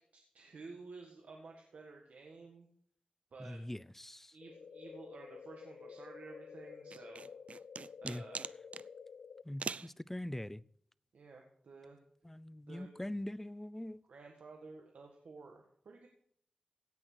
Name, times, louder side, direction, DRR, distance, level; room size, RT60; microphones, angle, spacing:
voice 1, 0.1-2.7 3.3-3.6 4.3-7.3 8.0-8.4 11.1-12.0 12.7-12.9 14.1-16.1, right 3 dB, 90° right, 1 dB, 1.7 m, -53 dB
voice 2, 3.4-4.4 8.0-8.2 9.4-10.6 12.2-14.0, left 1 dB, 10° left, 19 dB, 0.4 m, -42 dB
sound 1, 4.4-9.4, left 6 dB, 90° left, 0.5 m, -51 dB
sound 2, 6.9-8.9 9.6-9.9, right 5 dB, 65° right, 0.4 m, -42 dB
16.5 x 6.1 x 6.1 m, 0.65 s
wide cardioid pair, 65°, 2 cm